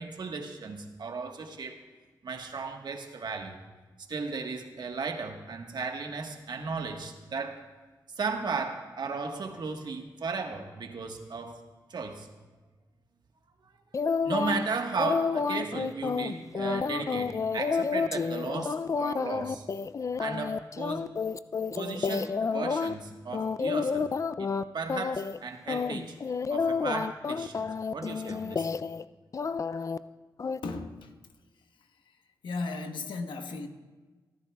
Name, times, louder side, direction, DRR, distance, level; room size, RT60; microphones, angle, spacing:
voice 1, 0.0-1.8 2.2-3.6 4.1-7.6 8.2-11.6 11.9-12.3 14.2-19.6 20.2-21.1 21.7-24.1 24.4-26.2 26.5-28.7, right 4 dB, 65° right, 4 dB, 1.4 m, -35 dB
sound 1, 13.9-14.6 15.0-22.9 23.3-24.6 24.9-25.4 25.7-29.0 29.3-30.0 30.4-30.6, left 5 dB, 40° left, 0.4 m, -30 dB
voice 2, 30.6-31.1 31.8-32.2 32.4-33.7, left 3 dB, 80° left, 5 dB, 1.2 m, -36 dB
28.5 x 11.0 x 2.3 m, 1.3 s
cardioid pair, 65°, 8 cm